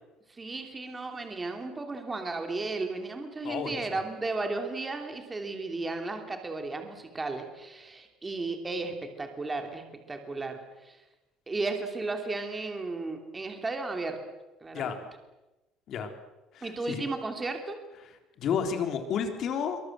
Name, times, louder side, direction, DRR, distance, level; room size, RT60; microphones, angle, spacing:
voice 1, 0.3-11.0 11.5-14.2 14.6-14.9 16.6-17.8, right 3 dB, 15° right, 5 dB, 3.1 m, -34 dB
voice 2, 3.4-4.0 14.7-15.0 15.9-16.1 16.5-17.0 18.4-19.8, left 7 dB, 45° left, 6 dB, 3.7 m, -31 dB
26.5 x 24.0 x 8.0 m, 1.0 s
cardioid pair, 165°, 0 cm